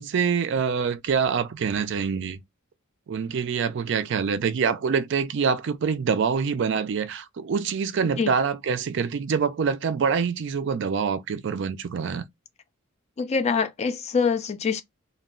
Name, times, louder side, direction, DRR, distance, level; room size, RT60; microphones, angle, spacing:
voice 1, 0.0-2.4 3.1-12.2, right 6 dB, 55° right, 0.4 m, -25 dB
voice 2, 13.2-14.8, left 5 dB, 30° left, 0.3 m, -24 dB
2.2 x 2.1 x 3.6 m
head